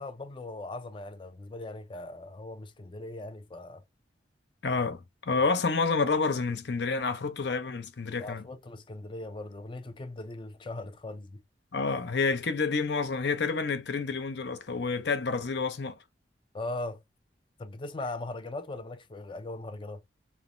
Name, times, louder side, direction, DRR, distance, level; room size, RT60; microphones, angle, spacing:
voice 1, 0.0-3.8 5.4-5.5 8.2-11.4 16.5-17.0 17.6-20.0, left 2 dB, 30° left, 0.4 m, -39 dB
voice 2, 4.6-8.4 11.7-16.0, left 4 dB, 70° left, 0.6 m, -29 dB
3.2 x 2.1 x 2.5 m
head